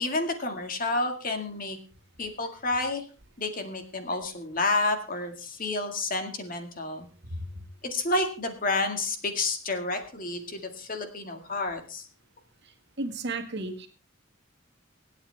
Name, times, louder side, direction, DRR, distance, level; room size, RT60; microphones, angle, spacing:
voice 1, 0.0-1.8 2.2-3.1 3.4-7.1 7.8-12.1, left 2 dB, 45° left, 6 dB, 2.0 m, -30 dB
voice 2, 7.2-7.6 13.0-13.9, right 2 dB, 60° right, 4 dB, 1.9 m, -34 dB
25.0 x 8.8 x 3.4 m, 0.36 s
head